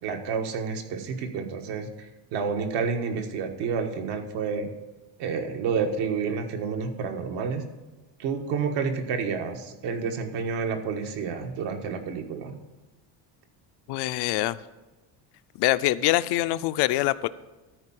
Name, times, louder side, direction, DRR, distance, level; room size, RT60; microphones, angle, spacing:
voice 1, 0.0-1.9 2.3-4.7 5.2-7.6 8.2-12.6, right 5 dB, 75° right, 4 dB, 1.5 m, -29 dB
voice 2, 13.9-14.6 15.6-17.3, left 16 dB, 70° left, 14 dB, 0.5 m, -24 dB
13.0 x 4.7 x 7.5 m, 1.1 s
cardioid pair, 155°, 42 cm